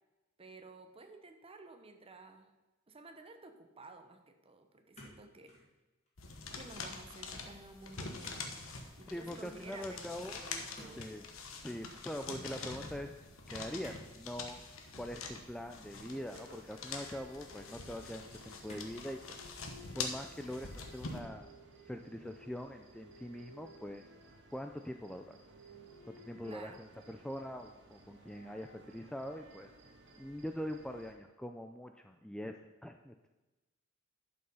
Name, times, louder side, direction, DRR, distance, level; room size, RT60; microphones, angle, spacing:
voice 1, 0.4-2.5 2.9-5.6 6.5-8.5 9.0-11.1 26.4-26.8, right 2 dB, 30° right, 6 dB, 1.0 m, -53 dB
sound 1, 4.9-5.7 6.1-6.5 8.2-8.5 8.7-9.0 10.7-11.5 13.8-14.1 14.6-14.8 15.7-16.5 17.2-17.3 18.7-19.0 19.6-20.1 20.5-20.8, left 1 dB, 35° left, 2.6 m, -55 dB
sound 2, 6.2-21.2, left 4 dB, 75° left, 1.2 m, -45 dB
voice 2, 9.1-10.4 11.0-11.3 11.6-13.1 13.5-14.6 15.0-19.2 19.9-21.5 21.9-24.1 24.5-25.4 26.1-29.7 30.2-32.5 32.8-33.3, equal, 5° left, 5 dB, 0.4 m, -43 dB
sound 3, 16.0-31.1, right 1 dB, 60° right, 1.7 m, -58 dB
11.5 x 5.5 x 5.6 m, 1.1 s
head